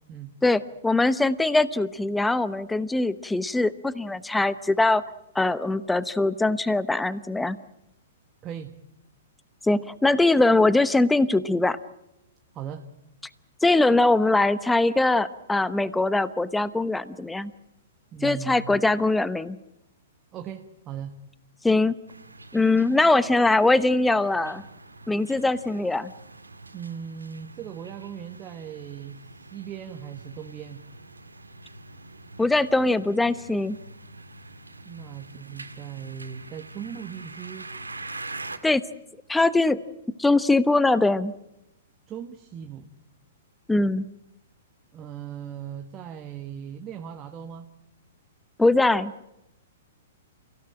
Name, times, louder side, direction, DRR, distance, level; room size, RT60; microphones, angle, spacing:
voice 1, 0.4-5.0 5.3-7.6 9.6-11.8 13.6-17.5 18.2-19.6 21.6-22.0 22.5-24.6 25.1-26.1 32.4-33.8 38.6-38.8 39.3-39.8 40.2-41.3 43.7-44.1 48.6-49.1, left 2 dB, 5° left, 16 dB, 1.0 m, -22 dB
voice 2, 8.4-8.7 12.5-12.8 18.1-18.8 20.3-21.1 26.7-30.8 34.8-37.7 42.1-42.9 44.9-47.6, right 8 dB, 30° right, 6 dB, 1.6 m, -38 dB
sound 1, 22.1-38.6, right 2 dB, 90° right, 2.1 m, -44 dB
29.5 x 16.5 x 8.9 m, 0.88 s
figure-of-eight pair, 110°, 0 cm